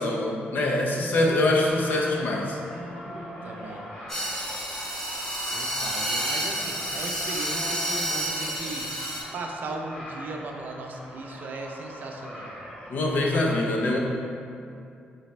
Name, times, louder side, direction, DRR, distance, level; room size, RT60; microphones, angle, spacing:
voice 1, 0.0-2.6 12.9-14.0, left 2 dB, 60° left, -1 dB, 0.6 m, -24 dB
voice 2, 0.8-1.7 3.4-3.8 5.5-8.9 9.3-12.6 13.5-13.6, right 3 dB, 55° right, 2 dB, 0.4 m, -37 dB
sound 1, 1.7-13.5, equal, 40° left, 1.3 m, -41 dB
sound 2, 4.1-9.2, equal, 15° left, 1.4 m, -30 dB
4.1 x 3.3 x 3.2 m, 2.4 s
cardioid pair, 120°, 4 cm